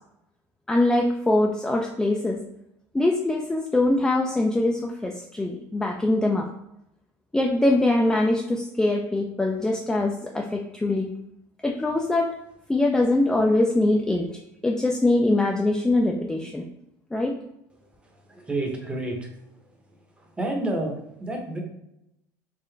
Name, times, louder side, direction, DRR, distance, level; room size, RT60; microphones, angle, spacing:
voice 1, 0.7-2.4 2.9-6.5 7.3-11.1 11.6-12.3 12.7-14.3 14.6-16.6 17.1-17.3, left 2 dB, 5° left, 0 dB, 0.3 m, -23 dB
voice 2, 18.3-19.3 20.2-20.9 21.2-21.6, right 2 dB, 15° right, 2 dB, 0.8 m, -29 dB
3.7 x 2.5 x 3.3 m, 0.83 s
supercardioid pair, 110°, 8 cm